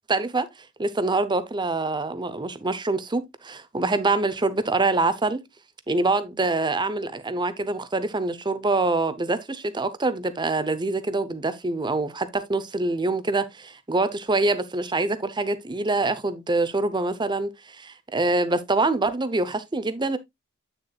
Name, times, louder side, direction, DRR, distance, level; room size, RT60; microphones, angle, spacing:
voice 1, 0.1-0.5 0.8-5.4 5.9-20.2, right 2 dB, 20° right, 0.8 m, -25 dB
9.0 x 6.7 x 2.3 m
head